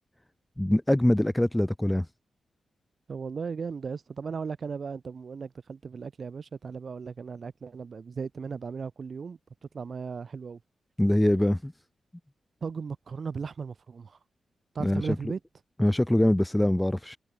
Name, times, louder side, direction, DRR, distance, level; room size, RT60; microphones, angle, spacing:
voice 1, 0.6-2.1 11.0-11.7 14.8-15.0 15.8-17.2, left 1 dB, 5° left, 1.8 m, -23 dB
voice 2, 3.1-9.4 9.7-10.6 12.6-14.2 14.7-15.4, right 5 dB, 40° right, 6.7 m, -36 dB
wide cardioid pair, 170°, 0 cm